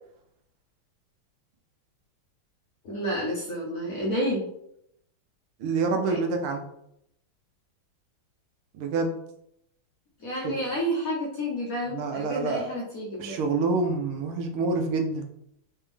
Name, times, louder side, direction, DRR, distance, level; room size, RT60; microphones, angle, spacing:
voice 1, 2.8-4.5 6.0-6.2 10.2-13.4, equal, 55° left, -3 dB, 1.1 m, -30 dB
voice 2, 5.6-6.7 8.7-9.1 10.4-10.6 11.9-12.8 13.2-15.2, right 3 dB, 80° right, 4 dB, 1.5 m, -27 dB
4.1 x 3.5 x 3.3 m, 0.76 s
omnidirectional pair, 2.3 m